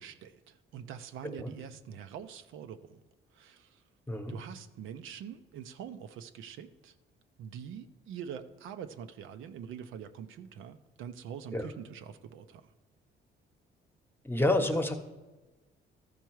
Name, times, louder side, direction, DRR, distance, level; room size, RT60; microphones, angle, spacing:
voice 1, 0.0-3.0 3.3-3.8 4.3-6.9 7.4-12.6, right 8 dB, 85° right, 9 dB, 0.6 m, -44 dB
voice 2, 14.2-15.0, left 1 dB, 10° left, 6 dB, 0.9 m, -29 dB
13.5 x 4.6 x 4.6 m, 1.2 s
cardioid pair, 90°, 20 cm